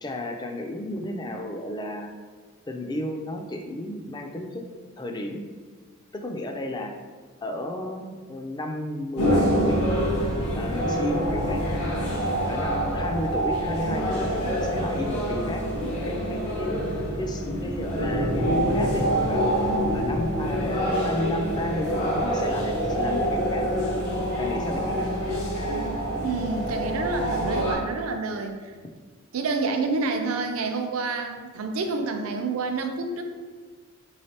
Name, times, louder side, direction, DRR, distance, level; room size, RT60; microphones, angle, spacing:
voice 1, 0.0-2.1 2.7-4.6 5.0-5.4 6.1-6.9 7.4-9.8 10.6-11.6 12.5-16.8 17.2-19.5 19.9-23.7 24.4-25.1, left 1 dB, 20° left, 3 dB, 0.3 m, -32 dB
sound 1, 9.2-27.7, equal, 90° left, 1.4 m, -26 dB
voice 2, 26.2-28.7 29.3-33.2, right 3 dB, 70° right, 5 dB, 0.5 m, -28 dB
4.7 x 3.2 x 2.8 m, 1.5 s
head